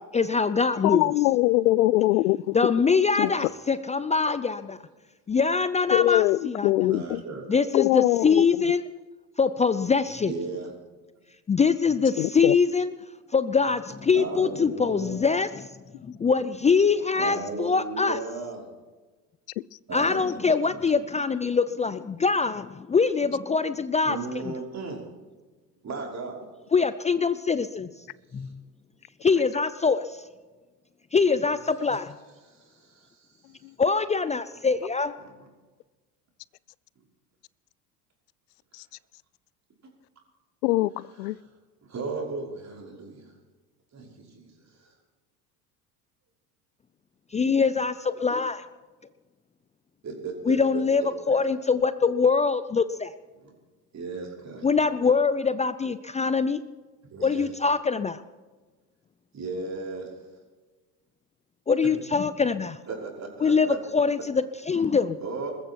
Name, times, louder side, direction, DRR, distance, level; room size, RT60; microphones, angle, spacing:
voice 1, 0.1-1.1 2.5-4.8 5.3-6.9 7.5-8.8 9.4-10.3 11.5-12.9 13.3-15.7 16.0-18.2 19.9-24.5 26.7-27.9 28.3-28.6 29.2-30.2 31.1-32.1 33.8-35.1 47.3-48.6 50.4-53.1 54.6-56.6 57.2-58.2 61.7-62.8 63.4-63.7 63.9-65.2, left 5 dB, 15° left, 13 dB, 0.5 m, -23 dB
voice 2, 0.8-2.6 3.2-3.3 5.9-7.2 7.7-8.4 12.2-12.5 40.6-41.4, left 17 dB, 75° left, 23 dB, 0.6 m, -22 dB
voice 3, 6.8-7.5 10.2-10.7 14.1-15.2 17.2-18.7 19.9-20.4 20.7-20.8 24.0-25.0 25.8-26.4 28.3-28.5 32.5-33.5 35.2-35.5 41.2-41.3 41.8-43.3 43.9-44.5 44.8-44.9 50.0-51.3 53.4-53.5 53.9-54.7 57.1-57.5 59.3-60.2 62.9-64.0 65.2-65.5, right 4 dB, 35° right, -1 dB, 5.6 m, -36 dB
21.0 x 14.0 x 4.6 m, 1.3 s
hypercardioid pair, 75°, 46 cm